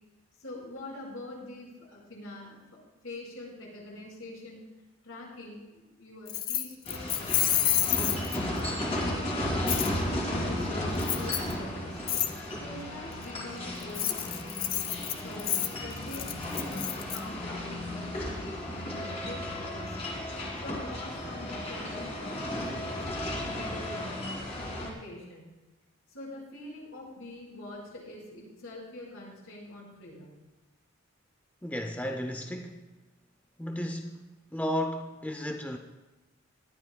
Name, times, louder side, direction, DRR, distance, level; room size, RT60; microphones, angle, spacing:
voice 1, 0.4-2.8 3.0-4.6 5.0-8.3 8.8-12.0 12.6-14.4 15.1-20.1 20.6-24.1 24.6-25.5 26.1-30.3, left 1 dB, 75° left, -3 dB, 4.6 m, -44 dB
Keys jangling, 6.3-8.6 9.7-9.9 11.0-11.5 12.1-12.3 13.8-17.2, left 12 dB, 45° left, 0.7 m, -29 dB
sound 1, 6.8-24.9, left 1 dB, 30° left, 2.5 m, -34 dB
voice 2, 31.6-32.9 33.6-35.8, equal, 5° left, 4 dB, 0.5 m, -34 dB
19.0 x 12.0 x 2.2 m, 1.1 s
head